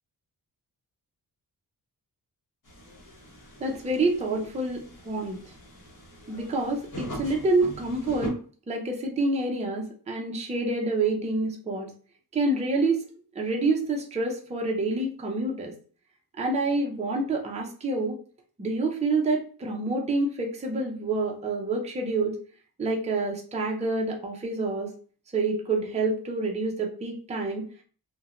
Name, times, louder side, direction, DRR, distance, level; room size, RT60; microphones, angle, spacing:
sound 1, 2.6-8.3, equal, 55° left, 0.8 m, -41 dB
voice 1, 3.6-5.4 6.3-8.3 8.7-11.9 12.3-13.0 13.3-15.7 16.4-18.1 18.6-22.4 22.8-24.9 25.3-27.6, right 2 dB, 20° right, 0 dB, 0.4 m, -27 dB
2.5 x 2.1 x 2.8 m, 0.42 s
wide cardioid pair, 180°, 39 cm